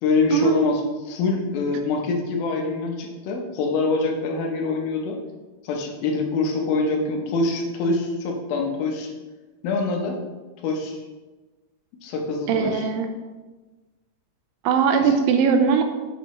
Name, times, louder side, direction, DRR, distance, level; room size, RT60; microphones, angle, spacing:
voice 1, 0.0-5.2 5.6-9.1 9.6-10.2 10.6-11.0 12.0-12.9 15.0-15.1, left 3 dB, 85° left, 2 dB, 2.8 m, -25 dB
voice 2, 12.5-13.1 14.6-15.8, right 6 dB, 85° right, 6 dB, 2.3 m, -19 dB
7.7 x 6.1 x 3.1 m, 1.2 s
omnidirectional pair, 4.1 m